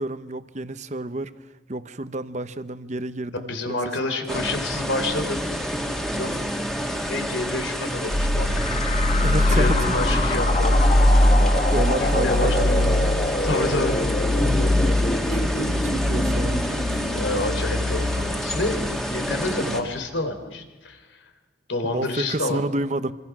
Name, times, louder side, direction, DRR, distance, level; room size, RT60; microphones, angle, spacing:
voice 1, 0.0-1.3 1.7-4.5 9.1-10.0 11.2-13.1 15.3-17.0 21.8-23.1, right 2 dB, 40° right, 0.9 m, -30 dB
voice 2, 3.5-5.4 5.7-5.8 6.1-6.6 7.1-11.4 12.0-12.7 13.2-14.0 16.3-16.5 16.9-21.3 21.7-22.6, left 2 dB, 90° left, 3.6 m, -29 dB
sound 1, 4.3-19.8, equal, ahead, 2.0 m, -28 dB
sound 2, 8.1-19.4, left 1 dB, 35° left, 1.1 m, -22 dB
26.0 x 26.0 x 6.1 m
head